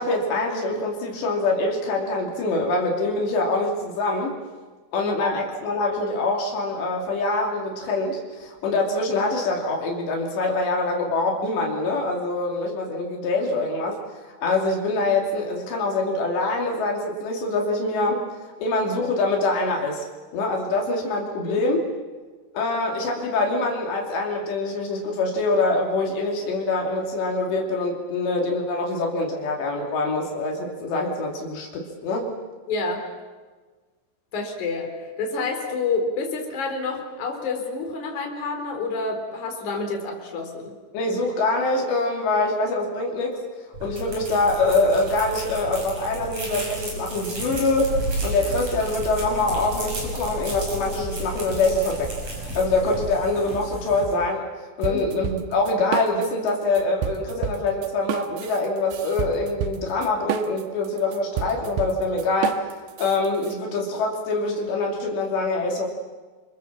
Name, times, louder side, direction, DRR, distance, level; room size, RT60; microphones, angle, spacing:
voice 1, 0.0-4.3 4.9-18.2 18.6-20.1 20.3-21.8 22.5-32.3 40.9-43.4 43.8-52.2 52.5-54.5 54.8-62.7 63.0-65.9, left 2 dB, 75° left, 0 dB, 4.9 m, -24 dB
voice 2, 5.0-5.4 21.4-21.6 32.7-33.1 34.3-40.8 54.9-55.1, left 3 dB, 45° left, 2 dB, 4.9 m, -28 dB
sound 1, 43.7-53.1, right 2 dB, 40° right, 7.4 m, -33 dB
sound 2, 47.4-54.1, equal, 15° right, 5.6 m, -38 dB
sound 3, 54.8-56.5 56.8-63.5, right 9 dB, 90° right, 3.5 m, -30 dB
28.0 x 26.5 x 7.4 m, 1.4 s
omnidirectional pair, 5.1 m